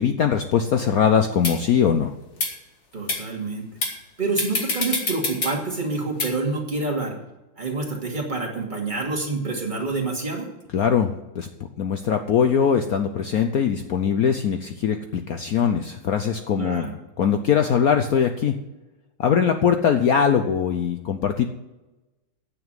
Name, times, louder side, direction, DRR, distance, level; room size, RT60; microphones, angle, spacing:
voice 1, 0.0-2.1 10.7-11.5 11.8-18.5 19.2-21.5, left 7 dB, 70° left, 7 dB, 0.8 m, -21 dB
sound 1, 1.4-1.5 2.3-2.5 3.1-3.2 3.8-4.0 4.4-5.5 6.2-6.3, left 2 dB, 35° left, 1.9 m, -25 dB
voice 2, 2.9-3.7 4.2-7.1 7.6-10.5 16.6-16.9, right 3 dB, 20° right, 0 dB, 2.4 m, -27 dB
9.3 x 7.3 x 8.9 m, 1.0 s
omnidirectional pair, 2.3 m